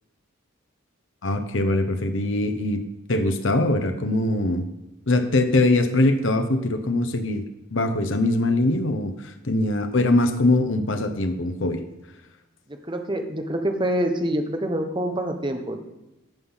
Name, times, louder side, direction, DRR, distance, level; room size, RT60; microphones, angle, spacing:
voice 1, 1.2-2.8 3.1-4.6 5.1-7.4 7.7-11.8, left 2 dB, 65° left, 7 dB, 0.9 m, -22 dB
voice 2, 12.7-15.8, right 1 dB, 20° right, 5 dB, 1.1 m, -26 dB
14.5 x 5.7 x 5.7 m, 0.98 s
head